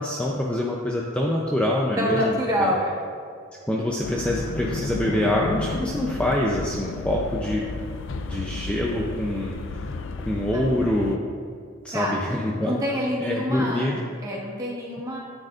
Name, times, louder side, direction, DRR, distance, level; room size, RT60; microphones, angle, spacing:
voice 1, 0.0-2.7 3.6-7.6 8.3-9.9 10.3-11.2 11.8-12.8 13.2-14.0, left 1 dB, 5° left, -3 dB, 0.5 m, -25 dB
voice 2, 2.0-3.0 10.5-10.6 11.9-12.2 12.6-15.2, equal, 15° right, -4 dB, 1.4 m, -26 dB
sound 1, 4.0-11.2, left 3 dB, 70° left, 0.4 m, -32 dB
9.9 x 9.0 x 2.5 m, 2.2 s
head